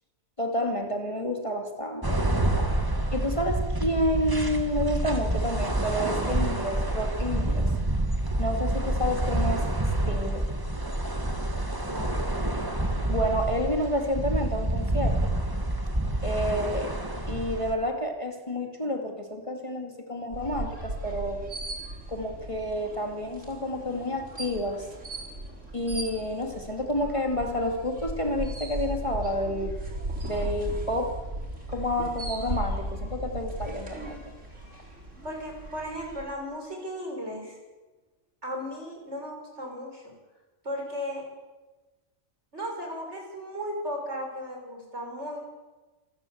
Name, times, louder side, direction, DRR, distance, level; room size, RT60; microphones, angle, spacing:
voice 1, 0.4-2.2 3.1-7.7 8.4-9.7 10.1-10.5 13.1-15.3 16.2-16.9 17.3-21.4 22.1-24.9 25.7-29.7 30.2-31.2 31.7-34.2, equal, 25° left, 3 dB, 2.5 m, -29 dB
sound 1, 2.0-17.8, right 1 dB, 20° right, 2.0 m, -28 dB
sound 2, 20.3-36.2, right 1 dB, 85° right, 4.7 m, -37 dB
voice 2, 35.2-37.6 38.4-40.0 40.6-41.3 42.5-45.4, equal, 65° right, 1 dB, 6.8 m, -35 dB
27.0 x 14.5 x 8.6 m, 1.2 s
omnidirectional pair, 1.2 m